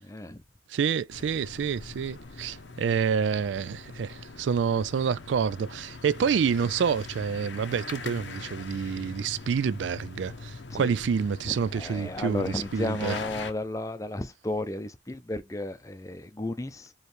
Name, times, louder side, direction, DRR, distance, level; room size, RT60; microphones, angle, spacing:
voice 1, 0.0-0.4 10.7-11.0 11.4-16.9, left 2 dB, 15° left, 0.5 m, -34 dB
voice 2, 0.7-13.1, right 6 dB, 85° right, 0.3 m, -28 dB
sound 1, 1.1-13.5, left 4 dB, 85° left, 0.7 m, -42 dB
4.5 x 3.1 x 3.3 m
head